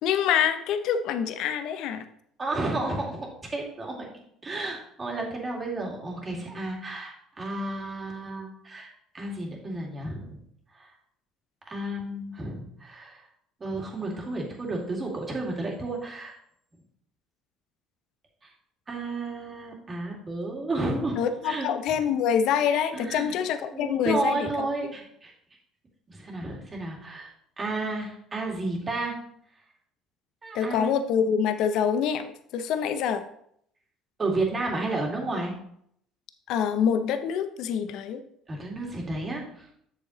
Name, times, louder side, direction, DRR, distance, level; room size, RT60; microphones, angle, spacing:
voice 1, 0.0-2.0 21.2-24.7 30.5-32.3 32.5-33.2 36.5-38.2, left 8 dB, 70° left, 10 dB, 0.6 m, -26 dB
voice 2, 2.4-4.1 4.4-8.9 9.1-10.4 10.8-10.9 11.7-13.2 13.6-16.3 18.9-22.0 22.9-23.3 23.7-25.3 26.1-27.3 27.6-29.1 30.4-30.9 34.2-35.5 38.5-39.8, right 2 dB, 25° right, -1 dB, 2.2 m, -32 dB
7.5 x 6.7 x 3.1 m, 0.69 s
supercardioid pair, 95°, 0 cm